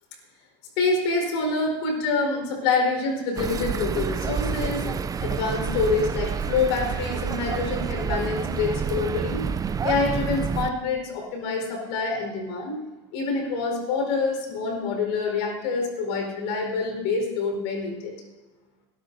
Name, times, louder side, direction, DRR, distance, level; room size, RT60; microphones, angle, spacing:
voice 1, 0.8-4.9 5.2-9.5 9.8-12.8 13.1-18.1, left 4 dB, 75° left, 2 dB, 4.6 m, -26 dB
sound 1, 3.4-10.7, right 6 dB, 25° right, 0.6 m, -28 dB
23.5 x 13.0 x 2.7 m, 1.2 s
hypercardioid pair, 90°, 14 cm